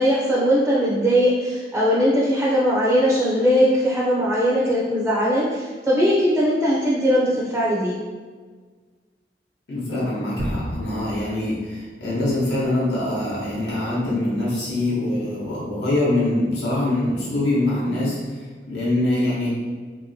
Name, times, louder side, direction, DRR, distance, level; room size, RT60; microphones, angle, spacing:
voice 1, 0.0-8.0, equal, 10° right, -6 dB, 0.4 m, -20 dB
voice 2, 9.7-19.5, left 1 dB, 70° left, -7 dB, 0.9 m, -24 dB
sound 1, 10.4-13.3, equal, 80° right, 0.8 m, -34 dB
2.9 x 2.9 x 2.7 m, 1.5 s
head